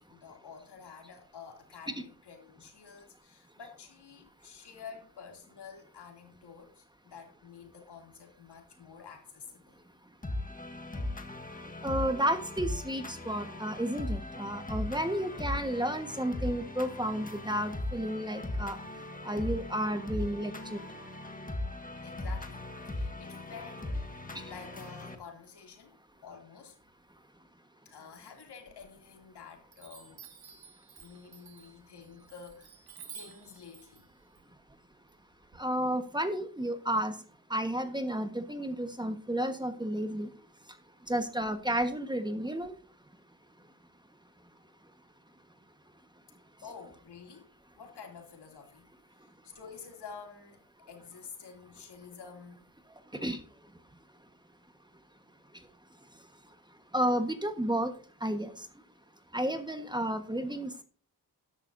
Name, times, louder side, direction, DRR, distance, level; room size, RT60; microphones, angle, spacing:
voice 1, 0.1-9.8 22.0-25.9 26.2-26.8 27.8-30.3 31.0-32.8 33.1-34.1 46.6-48.9 49.4-52.6, left 6 dB, 85° left, 2.9 m, -50 dB
sound 1, 10.2-25.2, left 2 dB, 20° left, 1.5 m, -38 dB
voice 2, 11.8-18.8 19.2-20.8 35.6-37.1 37.5-40.3 41.1-42.8 53.1-53.4 56.9-57.9 58.2-58.7 59.3-60.8, right 1 dB, 10° right, 1.4 m, -32 dB
Chime, 28.7-29.3 29.7-35.6, right 7 dB, 65° right, 1.8 m, -52 dB
13.5 x 11.0 x 2.7 m
cardioid pair, 85°, 39 cm